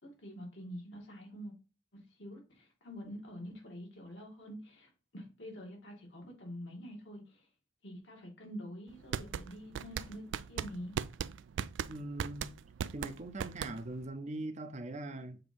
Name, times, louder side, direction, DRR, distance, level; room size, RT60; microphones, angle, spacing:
voice 1, 0.0-1.5 2.2-7.4 7.8-10.9, equal, 75° left, 2.5 m, -46 dB
sound 1, 8.9-14.1, right 8 dB, 80° right, 0.3 m, -38 dB
voice 2, 11.9-12.5 12.9-15.4, right 2 dB, 40° right, 0.7 m, -41 dB
6.9 x 2.9 x 5.2 m
head